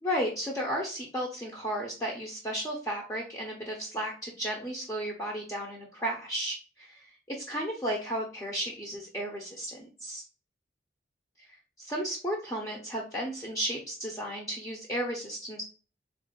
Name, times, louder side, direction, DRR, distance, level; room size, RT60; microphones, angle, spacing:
voice 1, 0.0-7.0 7.3-10.2 11.8-15.6, equal, 20° left, -2 dB, 0.6 m, -34 dB
3.9 x 2.5 x 3.7 m, 0.37 s
head